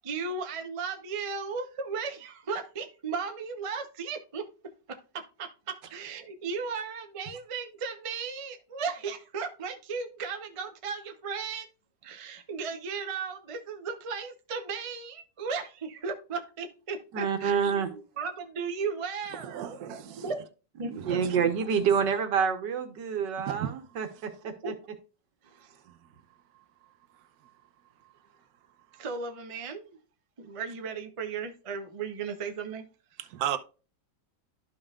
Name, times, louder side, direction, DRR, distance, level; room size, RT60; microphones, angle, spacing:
voice 1, 0.0-4.5 4.9-11.7 12.0-20.5 20.8-21.2 24.6-24.7 25.4-25.8 28.9-30.0 30.4-32.9 33.1-33.2, right 5 dB, 35° right, 0.5 m, -36 dB
voice 2, 17.1-17.9 20.8-24.7, right 7 dB, 85° right, 1.8 m, -28 dB
voice 3, 19.4-20.3 21.0-21.5 23.5-23.8 25.6-26.1 27.1-27.5 33.2-33.6, right 10 dB, 65° right, 1.2 m, -36 dB
12.5 x 5.5 x 2.4 m
omnidirectional pair, 1.8 m